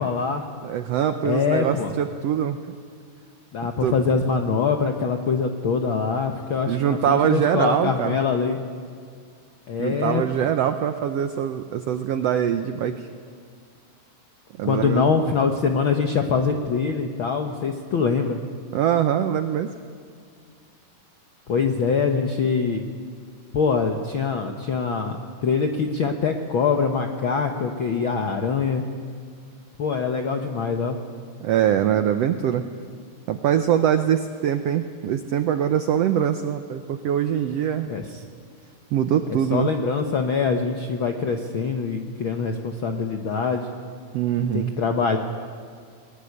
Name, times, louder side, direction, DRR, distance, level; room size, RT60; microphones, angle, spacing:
voice 1, 0.0-0.4 1.2-1.9 3.5-8.6 9.7-10.2 14.6-18.4 21.5-22.8 23.5-25.2 25.4-28.8 29.8-31.0 37.9-38.2 39.3-43.7 44.5-45.2, left 5 dB, 70° left, 4 dB, 1.2 m, -24 dB
voice 2, 0.6-2.6 3.8-3.9 6.7-8.2 9.8-13.1 14.6-15.1 18.7-19.7 31.4-32.6 33.3-37.9 38.9-39.7 44.1-44.7, right 9 dB, 85° right, 8 dB, 1.4 m, -23 dB
21.0 x 20.0 x 9.9 m, 2.1 s
omnidirectional pair, 3.9 m